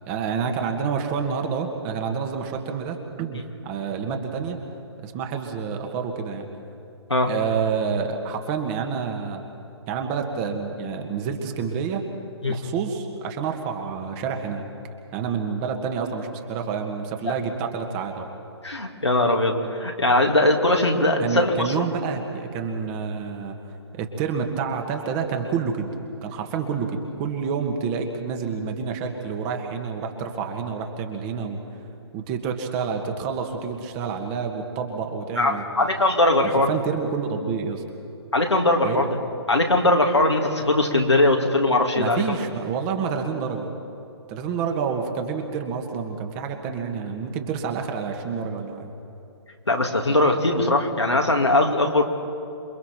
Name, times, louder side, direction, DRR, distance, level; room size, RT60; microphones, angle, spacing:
voice 1, 0.0-4.6 5.0-6.5 7.3-9.4 9.9-12.1 12.5-14.7 15.1-18.3 21.2-23.6 23.9-25.9 26.2-31.6 32.1-35.7 36.4-37.8 38.8-39.0 41.9-43.7 44.3-48.9, right 6 dB, 25° right, 4 dB, 1.9 m, -28 dB
voice 2, 18.6-21.8 35.4-36.7 38.3-39.1 39.5-42.2 49.7-52.0, left 2 dB, 85° left, 2 dB, 2.6 m, -20 dB
28.0 x 23.5 x 4.6 m, 2.7 s
figure-of-eight pair, 130°, 14 cm